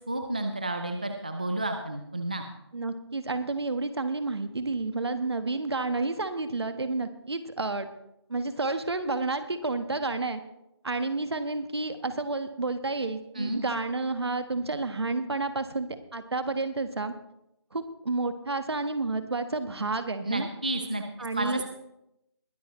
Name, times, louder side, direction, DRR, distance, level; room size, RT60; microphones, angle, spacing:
voice 1, 0.0-2.5 13.4-13.6 20.2-21.0 21.3-21.6, right 1 dB, 20° right, 5 dB, 0.4 m, -31 dB
voice 2, 2.7-7.9 8.3-10.4 10.8-17.1 17.7-20.5 21.2-21.6, right 3 dB, 65° right, 9 dB, 1.4 m, -30 dB
21.0 x 9.3 x 3.1 m, 0.84 s
figure-of-eight pair, 175°, 15 cm